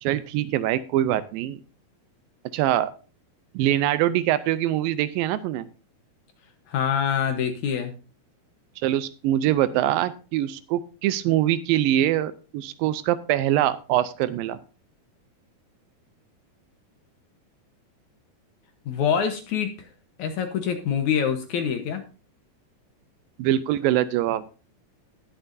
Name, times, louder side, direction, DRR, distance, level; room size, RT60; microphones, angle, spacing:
voice 1, 0.0-1.6 2.5-2.9 3.5-5.7 8.8-14.6 23.4-24.4, right 13 dB, 80° right, 15 dB, 2.3 m, -23 dB
voice 2, 6.7-7.9 18.9-19.9 20.2-22.0, left 8 dB, 65° left, 6 dB, 2.1 m, -25 dB
19.5 x 6.8 x 2.6 m, 0.35 s
omnidirectional pair, 4.2 m